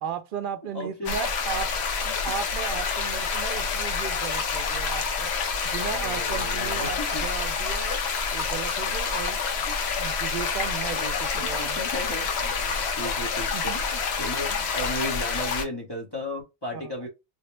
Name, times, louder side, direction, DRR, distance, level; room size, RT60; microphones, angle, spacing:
voice 1, 0.0-1.7 2.0-5.3 5.6-9.4 10.0-11.9 13.5-13.8 16.7-16.9, right 8 dB, 60° right, 0.6 m, -35 dB
voice 2, 0.7-1.2 5.9-7.3 8.9-9.0 9.7-9.8 10.9-17.1, left 1 dB, 25° left, 0.9 m, -35 dB
sound 1, 1.1-15.7, left 5 dB, 75° left, 0.9 m, -28 dB
3.6 x 2.0 x 3.1 m
omnidirectional pair, 1.1 m